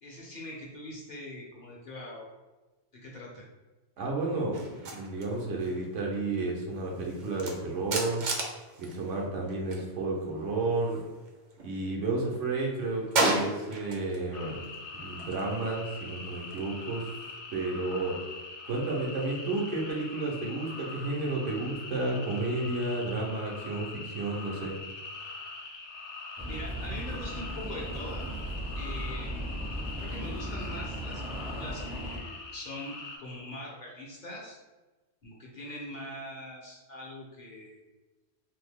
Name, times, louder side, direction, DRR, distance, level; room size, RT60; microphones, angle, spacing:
voice 1, 0.0-2.3 2.9-3.5 26.4-28.3 28.7-29.5 30.0-34.6 35.2-37.8, left 1 dB, 50° left, -3 dB, 0.6 m, -42 dB
voice 2, 4.0-8.2 8.8-11.0 11.6-14.6 14.9-17.1 17.5-18.2 18.7-24.7, right 2 dB, 85° right, -2 dB, 1.1 m, -32 dB
sound 1, 4.5-9.9 10.1-11.8 12.1-14.2 14.6-17.3, right 2 dB, 55° right, 0.6 m, -35 dB
sound 2, 14.3-33.2, left 3 dB, 75° left, 0.9 m, -43 dB
sound 3, 26.4-32.2, right 1 dB, 10° right, 0.3 m, -37 dB
2.8 x 2.6 x 3.5 m, 1.2 s
omnidirectional pair, 1.2 m